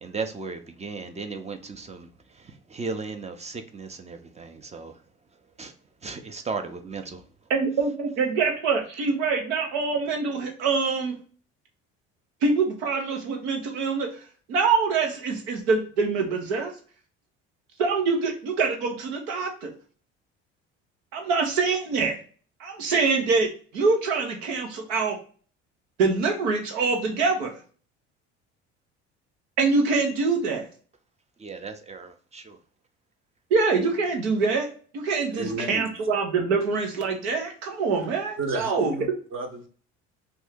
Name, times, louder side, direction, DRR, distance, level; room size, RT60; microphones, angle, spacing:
voice 1, 0.0-5.0 5.6-5.7 6.0-7.3 31.4-32.6, right 4 dB, 20° right, 0.6 m, -36 dB
voice 2, 7.5-11.2 12.4-14.2 14.5-16.7 17.8-19.7 21.1-22.2 22.6-25.2 26.0-27.5 29.6-30.7 33.5-34.7 34.9-38.9, right 4 dB, 85° right, 1.0 m, -25 dB
voice 3, 35.3-35.9 38.4-39.7, right 2 dB, 40° right, 0.9 m, -32 dB
2.7 x 2.7 x 3.5 m
supercardioid pair, 75°, 31 cm